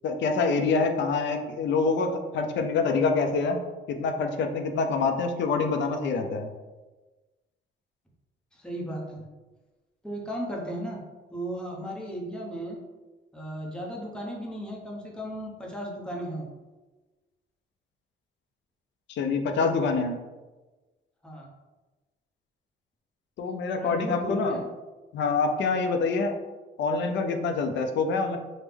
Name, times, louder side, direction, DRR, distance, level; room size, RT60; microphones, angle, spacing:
voice 1, 0.0-3.6 3.9-6.5 19.1-20.2 23.4-24.6 25.1-26.4 26.8-28.4, left 4 dB, 65° left, 6 dB, 0.5 m, -26 dB
voice 2, 8.5-9.3 10.0-11.0 11.3-12.8 13.3-16.5 21.2-21.5 23.8-24.7, equal, 5° left, -2 dB, 0.8 m, -35 dB
3.4 x 2.1 x 3.3 m, 1.2 s
cardioid pair, 90°, 20 cm